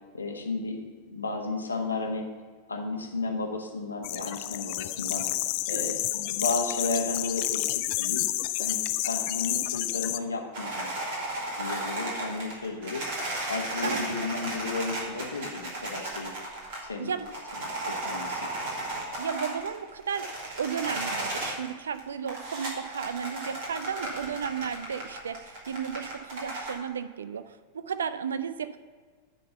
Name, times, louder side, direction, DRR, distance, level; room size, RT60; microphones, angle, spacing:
voice 1, 0.1-0.8 1.1-2.3 2.7-5.3 5.7-8.2 8.6-8.8 9.1-10.9 11.6-13.0 13.5-16.3 16.8-17.1 17.6-18.4, left 3 dB, 75° left, 2 dB, 1.1 m, -33 dB
sound 1, 4.0-10.2, left 16 dB, 45° left, 0.3 m, -30 dB
sound 2, 10.5-21.7 21.9-26.7, right 1 dB, 50° right, 2.1 m, -35 dB
voice 2, 19.2-20.3 20.6-28.8, right 7 dB, 70° right, 13 dB, 0.4 m, -34 dB
9.8 x 3.8 x 6.7 m, 1.6 s
figure-of-eight pair, 90°, 0 cm